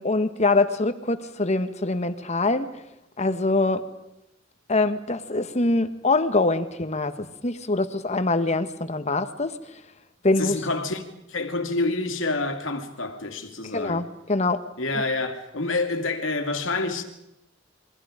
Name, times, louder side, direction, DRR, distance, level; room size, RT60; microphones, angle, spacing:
voice 1, 0.0-2.7 3.2-3.8 4.7-9.6 10.2-10.6 13.7-15.0, left 2 dB, 35° left, 1.4 m, -24 dB
voice 2, 10.4-11.0 11.3-14.1 14.8-17.0, left 3 dB, 85° left, 2.6 m, -27 dB
28.5 x 23.0 x 5.1 m
head